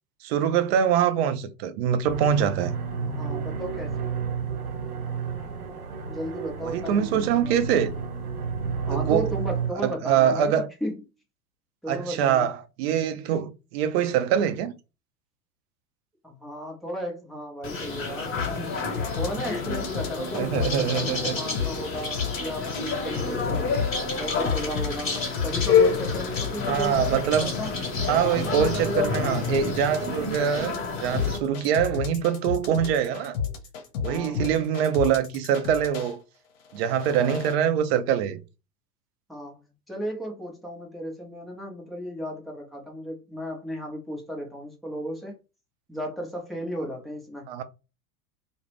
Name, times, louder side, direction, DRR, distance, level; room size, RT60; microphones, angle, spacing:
voice 1, 0.2-2.7 6.6-8.0 8.9-9.3 9.8-10.7 11.9-14.7 20.3-21.3 26.6-27.5 28.1-33.4 34.0-36.2 36.7-38.4 47.5-47.6, right 9 dB, 45° right, 0.5 m, -24 dB
sound 1, 2.1-9.7, right 5 dB, 75° right, 0.8 m, -31 dB
voice 2, 3.0-4.1 6.0-7.6 8.9-11.0 11.8-12.5 16.2-18.8 19.2-23.7 24.2-27.7 28.2-29.2 34.1-34.6 37.1-37.3 39.3-45.4 45.9-47.4, equal, ahead, 0.6 m, -35 dB
sound 2, 17.6-31.4, left 5 dB, 30° left, 1.1 m, -28 dB
sound 3, 18.3-21.1 21.5-22.9 23.1-36.1 36.7-37.5, left 7 dB, 55° left, 0.8 m, -32 dB
2.3 x 2.1 x 3.3 m
figure-of-eight pair, 95°, 46 cm